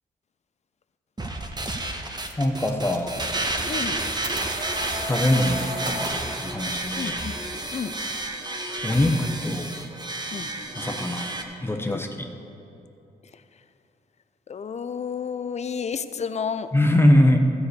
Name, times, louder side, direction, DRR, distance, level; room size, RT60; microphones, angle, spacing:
sound 1, 1.2-11.4, right 2 dB, 25° right, 1.3 m, -31 dB
voice 1, 2.4-3.2 5.1-7.1 8.8-9.7 10.7-11.3 11.6-12.3 16.7-17.4, left 1 dB, 15° left, 3 dB, 1.1 m, -22 dB
voice 2, 3.7-4.0 7.0-7.4 7.7-7.9 10.3-10.5 11.9-12.0 14.5-16.7, left 6 dB, 45° left, 12 dB, 0.6 m, -31 dB
sound 2, 3.8-6.3, right 1 dB, 50° right, 2.0 m, -33 dB
13.5 x 4.9 x 8.3 m, 2.8 s
supercardioid pair, 50°, 16 cm